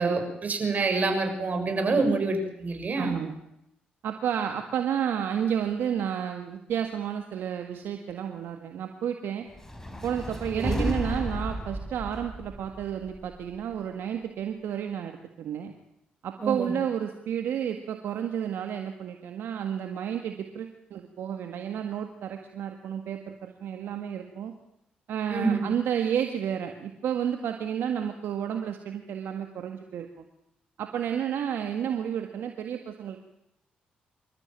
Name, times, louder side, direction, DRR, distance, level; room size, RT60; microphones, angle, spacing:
voice 1, 0.0-3.2 10.6-10.8 16.4-16.7 25.3-25.7, right 3 dB, 45° right, 5 dB, 6.4 m, -27 dB
voice 2, 3.0-3.4 4.0-9.5 10.0-15.7 16.2-24.5 25.1-30.2 30.8-33.3, right 9 dB, 70° right, 5 dB, 1.7 m, -31 dB
sound 1, 9.5-13.8, equal, 10° left, 4.4 m, -34 dB
26.5 x 13.5 x 9.0 m, 0.83 s
supercardioid pair, 50°, 4 cm